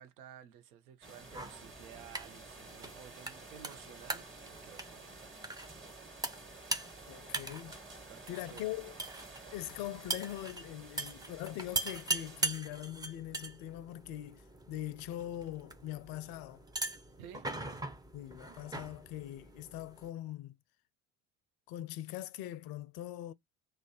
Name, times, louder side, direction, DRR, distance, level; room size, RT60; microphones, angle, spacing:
voice 1, 0.0-5.4 8.1-8.7 17.2-17.5, right 9 dB, 75° right, 0.7 m, -54 dB
sound 1, 1.0-12.5, right 3 dB, 25° right, 1.4 m, -52 dB
sound 2, 1.2-20.1, right 2 dB, 10° right, 0.5 m, -42 dB
voice 2, 7.1-7.8 8.3-8.9 9.5-16.6 18.1-20.6 21.7-23.3, left 13 dB, 55° left, 0.5 m, -42 dB
2.4 x 2.1 x 3.8 m
figure-of-eight pair, 50°, 44 cm